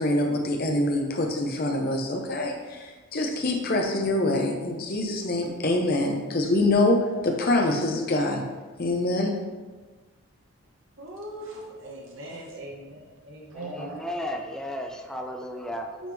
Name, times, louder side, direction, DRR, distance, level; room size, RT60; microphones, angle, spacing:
voice 1, 0.0-8.4 8.8-9.4, left 2 dB, 45° left, 2 dB, 0.7 m, -25 dB
voice 2, 11.0-14.0 16.0-16.1, right 1 dB, 65° right, -2 dB, 1.1 m, -39 dB
voice 3, 13.5-16.0, equal, 5° left, 2 dB, 0.3 m, -34 dB
8.8 x 3.6 x 3.4 m, 1.3 s
head